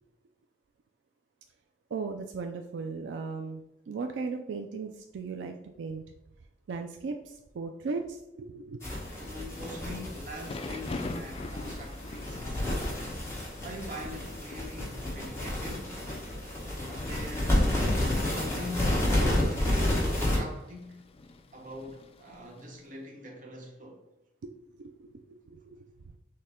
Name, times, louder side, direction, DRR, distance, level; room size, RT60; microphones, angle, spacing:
voice 1, 1.9-6.0 6.7-8.8 24.4-24.5 24.8-26.2, right 4 dB, 80° right, 0.4 m, -37 dB
sound 1, 8.8-20.4, left 1 dB, 15° left, 1.3 m, -30 dB
voice 2, 9.1-12.7 13.6-16.0 16.9-19.7 20.2-21.0 21.5-24.0, left 1 dB, 45° right, 1.0 m, -43 dB
Thunder / Rain, 9.7-22.8, left 2 dB, 35° left, 0.3 m, -45 dB
6.5 x 2.2 x 3.5 m
head